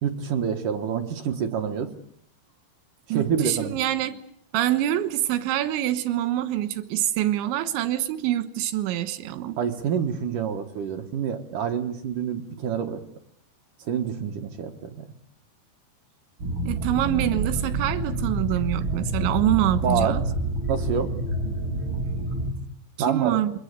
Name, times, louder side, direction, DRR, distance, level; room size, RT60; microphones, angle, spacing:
voice 1, 0.0-1.9 3.1-3.8 9.6-13.0 13.8-15.1 19.8-20.2 20.7-21.2 23.0-23.4, right 7 dB, 60° right, 2.3 m, -27 dB
voice 2, 3.1-4.2 4.5-9.6 16.7-20.2 23.1-23.5, right 13 dB, 85° right, 3.6 m, -25 dB
sound 1, 16.4-22.5, right 1 dB, 30° right, 3.0 m, -28 dB
28.0 x 23.0 x 6.7 m
omnidirectional pair, 5.2 m